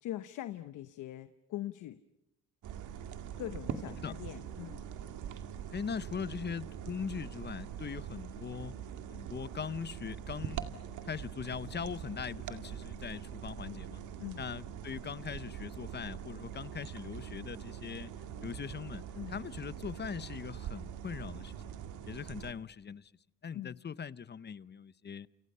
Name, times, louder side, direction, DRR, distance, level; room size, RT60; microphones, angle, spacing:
voice 1, 0.0-2.0 3.4-4.9 14.2-14.4 19.2-19.4 23.5-23.8, left 13 dB, 85° left, 1.0 m, -42 dB
sound 1, 2.6-22.5, right 9 dB, 80° right, 2.2 m, -43 dB
voice 2, 5.7-8.8 9.1-10.6 11.0-14.0 14.4-18.1 18.4-19.0 19.3-21.6 22.0-23.1 23.4-25.3, left 7 dB, 35° left, 0.9 m, -41 dB
29.0 x 29.0 x 5.6 m
cardioid pair, 90°, 30 cm